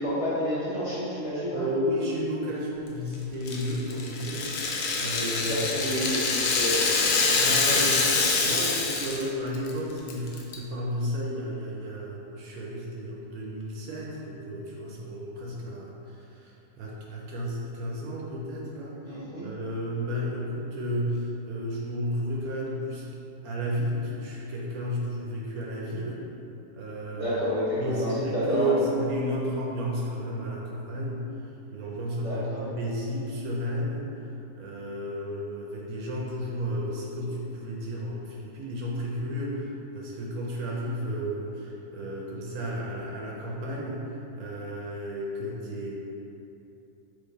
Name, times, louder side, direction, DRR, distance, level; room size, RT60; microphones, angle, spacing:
voice 1, 0.0-1.6 5.2-7.0 19.0-19.5 27.1-28.8 32.2-32.6, left 1 dB, 25° left, -12 dB, 1.1 m, -30 dB
voice 2, 1.5-4.5 4.9-5.9 7.2-19.1 19.4-23.1 23.4-26.2 26.7-27.4 27.8-31.2 31.7-34.1 34.5-46.0, equal, 70° right, -3 dB, 1.0 m, -32 dB
Rattle (instrument), 3.5-9.3 9.5-9.7 10.1-10.6, left 4 dB, 70° left, 0.9 m, -25 dB
3.8 x 3.0 x 4.0 m, 2.9 s
omnidirectional pair, 1.7 m